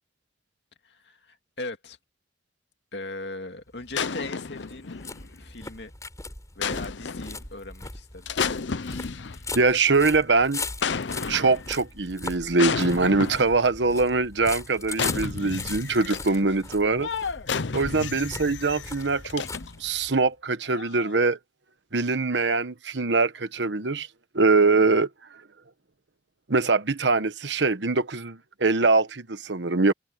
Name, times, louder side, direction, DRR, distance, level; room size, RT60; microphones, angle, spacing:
voice 1, 0.8-2.0 2.9-4.9 5.4-5.9 6.5-8.3 16.2-16.7 17.5-17.6 24.7-24.9, left 2 dB, 70° left, 2.4 m, -39 dB
sound 1, 3.7-20.2, left 3 dB, 20° left, 6.6 m, -39 dB
sound 2, 3.9-5.4 6.6-7.4 8.3-9.7 10.8-11.8 12.6-13.6 14.9-16.4 17.0-19.9 20.7-21.2, left 5 dB, 85° left, 0.8 m, -32 dB
voice 2, 9.5-10.6 11.3-17.1 17.7-19.5 19.8-21.4 21.9-24.1 24.3-25.1 26.5-29.9, right 3 dB, 75° right, 1.2 m, -23 dB
head